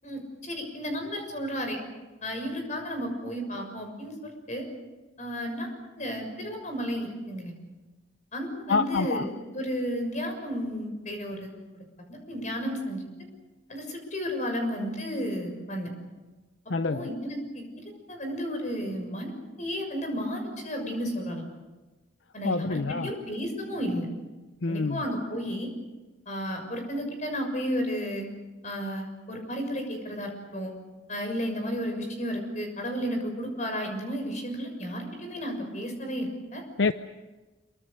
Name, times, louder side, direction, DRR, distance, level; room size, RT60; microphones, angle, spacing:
voice 1, 0.0-1.8 2.2-4.7 5.2-5.7 6.0-7.6 8.3-11.8 12.1-13.0 13.7-15.9 16.9-17.7 18.1-21.4 22.3-24.1 24.7-25.7 26.3-28.2 28.6-30.7 31.1-36.6, equal, 40° left, 4 dB, 6.7 m, -33 dB
voice 2, 8.7-9.3 16.7-17.1 22.4-23.2 24.6-25.0 36.8-36.9, left 4 dB, 70° left, 10 dB, 0.7 m, -27 dB
27.0 x 24.5 x 6.7 m, 1.2 s
head